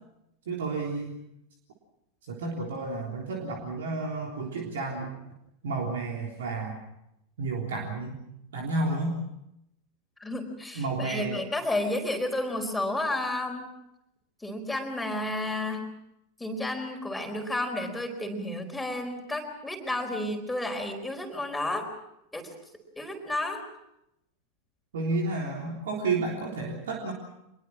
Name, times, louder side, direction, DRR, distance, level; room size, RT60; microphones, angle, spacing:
voice 1, 0.5-1.2 2.2-5.1 5.6-6.8 7.4-8.2 8.5-9.2 10.7-11.4 24.9-27.1, right 3 dB, 60° right, 0 dB, 3.6 m, -31 dB
voice 2, 10.2-13.7 14.4-15.8 16.4-21.9 22.3-22.5 23.0-23.6, left 1 dB, 5° left, 4 dB, 4.4 m, -31 dB
25.5 x 22.0 x 6.2 m, 0.84 s
figure-of-eight pair, 90°, 0 cm